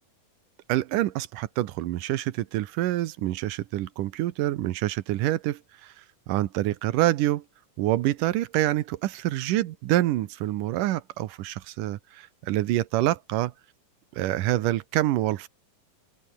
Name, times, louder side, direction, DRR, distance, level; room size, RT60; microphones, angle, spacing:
voice 1, 0.7-7.4 7.8-13.5 14.1-15.5, right 15 dB, 70° right, 2.4 m, -26 dB
open air
omnidirectional pair, 4.1 m